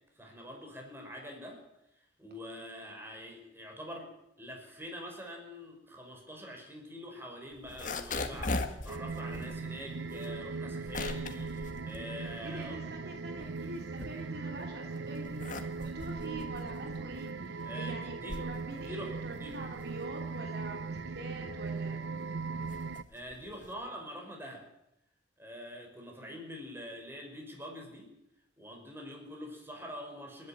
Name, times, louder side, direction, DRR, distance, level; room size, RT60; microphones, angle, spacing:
voice 1, 0.2-1.6 2.2-12.8 17.6-18.4 18.9-19.5 23.1-24.7 25.4-28.1 28.6-30.5, equal, 10° right, 2 dB, 5.2 m, -45 dB
sound 1, 7.5-12.8 13.2-14.6 15.1-23.9, left 3 dB, 45° left, 1.7 m, -41 dB
sound 2, 8.9-23.0, right 4 dB, 75° right, 0.7 m, -39 dB
voice 2, 12.4-22.2 26.1-26.4, right 2 dB, 60° right, 2 dB, 3.1 m, -45 dB
28.0 x 11.0 x 8.9 m, 0.83 s
head